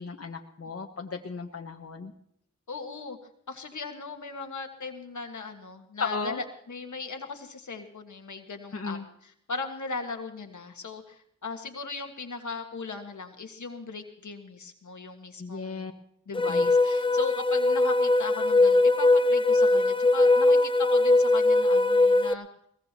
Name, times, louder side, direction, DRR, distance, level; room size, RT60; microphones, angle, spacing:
voice 1, 0.0-2.1 6.0-6.4 8.7-9.0 15.4-15.9 16.5-16.7, left 4 dB, 50° left, 3 dB, 1.4 m, -35 dB
voice 2, 2.7-3.2 3.5-15.9 16.3-22.5, left 4 dB, 70° left, 5 dB, 1.7 m, -38 dB
sound 1, 16.3-22.3, left 2 dB, 15° left, 0.5 m, -21 dB
22.0 x 18.5 x 3.0 m, 0.69 s
cardioid pair, 60°, 30 cm